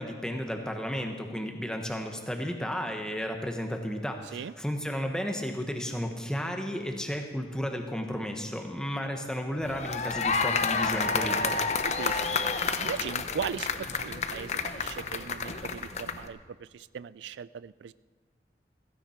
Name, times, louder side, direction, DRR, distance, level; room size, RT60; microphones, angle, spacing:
voice 1, 0.0-11.6, equal, 5° left, 4 dB, 1.2 m, -33 dB
sound 1, 9.6-16.3, left 4 dB, 40° left, 0.7 m, -30 dB
voice 2, 12.0-12.4 12.6-17.9, right 7 dB, 85° right, 18 dB, 0.3 m, -38 dB
16.0 x 16.0 x 4.5 m, 1.5 s
head